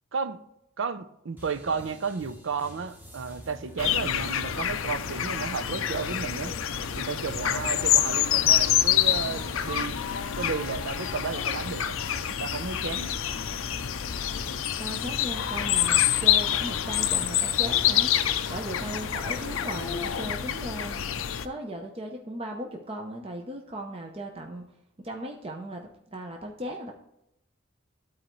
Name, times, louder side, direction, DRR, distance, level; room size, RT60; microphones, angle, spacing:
voice 1, 0.8-6.6 7.0-10.0 10.4-12.0 12.3-13.1, right 5 dB, 70° right, 0.5 m, -33 dB
sound 1, 1.4-20.1, left 1 dB, 10° right, 1.0 m, -47 dB
sound 2, 3.8-21.5, left 10 dB, 90° left, 0.5 m, -27 dB
sound 3, 5.8-20.4, left 3 dB, 20° left, 0.9 m, -51 dB
voice 2, 14.8-21.0 21.4-24.7 25.0-26.9, right 1 dB, 30° right, 0.7 m, -37 dB
12.5 x 4.4 x 3.1 m
head